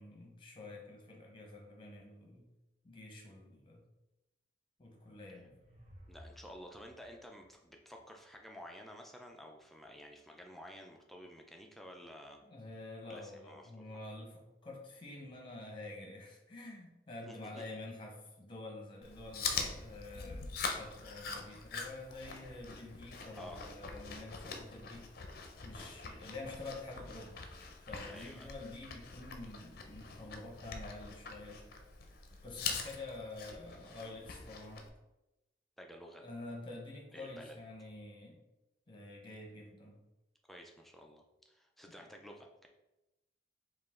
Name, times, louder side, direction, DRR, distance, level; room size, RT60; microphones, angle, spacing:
voice 1, 0.0-2.5 2.8-3.8 4.8-5.6 12.4-27.5 27.9-31.6 32.4-34.9 36.2-38.4 38.9-40.0 42.0-42.1, left 2 dB, 30° left, 0 dB, 0.9 m, -48 dB
sound 1, 5.0-8.4, equal, 40° right, 0.8 m, -59 dB
voice 2, 6.1-12.4 13.1-13.9 17.2-17.6 23.3-23.7 25.8-25.9 28.1-28.5 35.8-36.2 37.1-37.6 40.5-42.7, equal, ahead, 1 dB, 0.4 m, -52 dB
Chewing mastication, 19.0-34.9, left 5 dB, 55° left, 0.5 m, -43 dB
4.9 x 2.5 x 3.6 m, 0.96 s
head